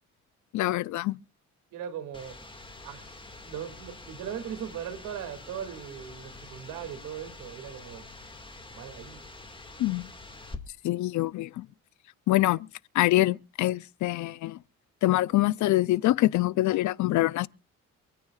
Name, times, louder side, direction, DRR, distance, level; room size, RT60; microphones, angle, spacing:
voice 1, 0.5-1.2 9.8-10.1 10.8-11.7 12.3-12.6 12.9-14.6 15.0-17.5, left 16 dB, 75° left, 0.5 m, -25 dB
voice 2, 1.7-2.4 2.8-8.1 8.7-9.2, right 9 dB, 90° right, 2.5 m, -39 dB
sound 1, 2.1-10.6, left 2 dB, 15° left, 2.0 m, -46 dB
27.0 x 9.2 x 2.4 m
cardioid pair, 90°, 30 cm